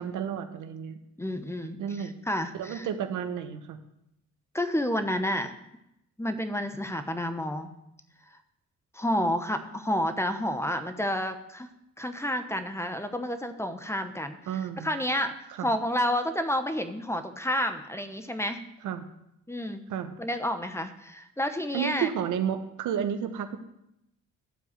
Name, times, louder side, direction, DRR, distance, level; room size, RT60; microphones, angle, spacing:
voice 1, 0.0-1.0 1.8-2.1 2.5-3.8 14.5-14.9 15.6-15.7 18.8-19.0 19.9-20.1 21.7-23.6, right 8 dB, 80° right, 8 dB, 1.1 m, -31 dB
voice 2, 1.2-2.9 4.5-5.5 6.2-7.7 8.9-11.7 12.0-14.4 14.8-15.3 15.6-18.6 19.5-19.8 20.2-22.1, equal, 10° left, 8 dB, 1.0 m, -30 dB
12.0 x 4.7 x 8.0 m, 0.83 s
cardioid pair, 90°, 30 cm